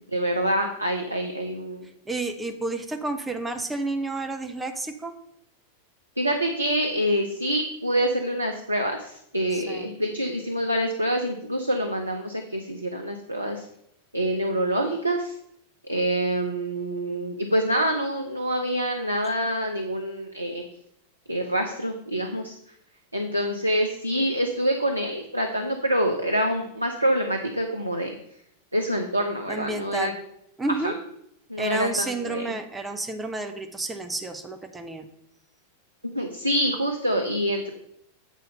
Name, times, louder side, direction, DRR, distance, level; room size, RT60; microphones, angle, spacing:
voice 1, 0.1-1.9 6.2-13.7 14.1-15.4 15.8-20.6 21.3-22.6 23.1-28.1 28.7-30.1 30.8-30.9 31.5-32.5 36.0-37.7, equal, 85° right, 4 dB, 0.6 m, -26 dB
voice 2, 2.1-5.1 9.5-9.9 29.5-30.1 30.6-31.0 31.6-35.1, right 2 dB, 10° right, 5 dB, 0.7 m, -30 dB
8.3 x 4.0 x 5.4 m, 0.75 s
figure-of-eight pair, 90°, 0 cm